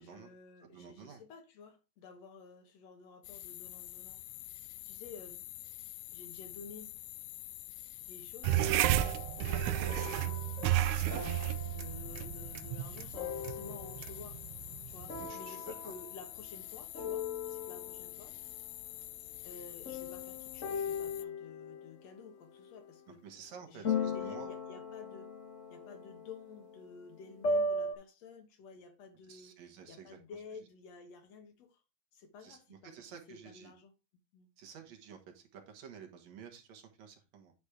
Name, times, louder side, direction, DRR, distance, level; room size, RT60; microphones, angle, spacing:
voice 1, 0.0-4.2 4.8-5.5 6.1-6.9 8.1-11.0 11.7-14.4 14.9-18.4 19.4-23.2 23.7-25.3 25.7-31.8 32.1-33.9 34.3-34.5, left 5 dB, 65° left, 2.3 m, -52 dB
voice 2, 0.6-1.2 15.2-15.9 23.2-24.5 29.3-30.2 32.4-33.7 34.6-37.5, right 7 dB, 70° right, 2.5 m, -51 dB
sound 1, 3.2-21.2, left 16 dB, 80° left, 1.9 m, -47 dB
sound 2, 8.4-15.3, right 13 dB, 90° right, 2.0 m, -33 dB
sound 3, 8.9-14.4 15.1-16.7 16.9-18.2 19.8-22.9 23.8-27.9, left 3 dB, 45° left, 1.0 m, -39 dB
9.7 x 4.2 x 4.8 m
omnidirectional pair, 3.3 m